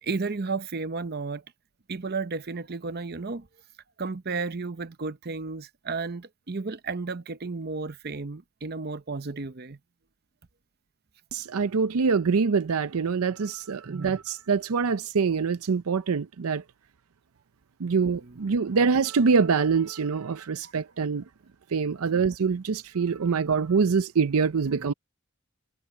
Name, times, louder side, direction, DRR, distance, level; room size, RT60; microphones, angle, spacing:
voice 1, 0.0-1.4 1.9-3.5 4.0-9.8 13.8-14.2 18.0-18.4 18.7-18.8 20.6-20.7 22.1-22.2, right 4 dB, 45° right, 0.8 m, -33 dB
voice 2, 11.3-16.6 17.8-21.2 21.7-24.9, right 5 dB, 75° right, 0.5 m, -25 dB
head